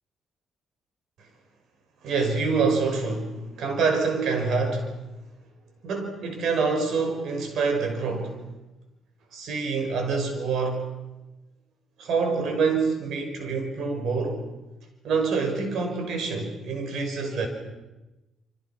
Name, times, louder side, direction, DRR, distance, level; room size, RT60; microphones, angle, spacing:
voice 1, 2.0-4.9 5.8-8.4 9.3-10.9 12.0-14.4 15.0-17.5, right 4 dB, 75° right, 5.8 m, -26 dB
28.0 x 25.5 x 6.0 m
cardioid pair, 90°, 0 cm